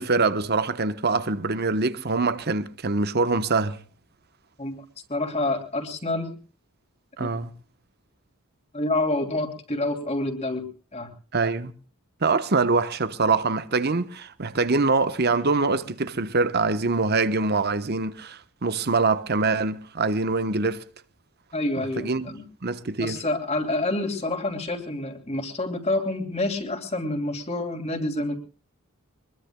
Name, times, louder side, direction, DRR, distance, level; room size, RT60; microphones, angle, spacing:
voice 1, 0.0-3.8 7.2-7.5 11.3-11.7 12.2-20.8 21.8-22.3 22.6-23.2, right 3 dB, 45° right, 1.0 m, -24 dB
voice 2, 5.1-6.4 7.2-7.3 8.7-11.1 21.5-22.4 23.0-28.4, left 2 dB, 30° left, 2.8 m, -28 dB
24.5 x 21.5 x 2.3 m
head